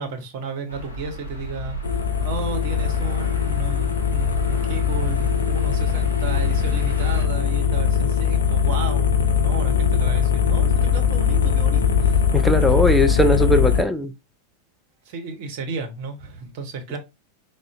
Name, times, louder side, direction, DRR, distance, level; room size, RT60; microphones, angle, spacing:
voice 1, 0.0-12.3 15.1-17.0, right 4 dB, 50° right, 0.6 m, -33 dB
sound 1, 0.7-7.2, right 1 dB, 85° left, 0.8 m, -33 dB
sound 2, 1.8-13.8, left 7 dB, 70° left, 0.4 m, -20 dB
voice 2, 12.3-14.1, equal, ahead, 0.3 m, -19 dB
3.6 x 2.0 x 2.3 m
figure-of-eight pair, 90°, 0 cm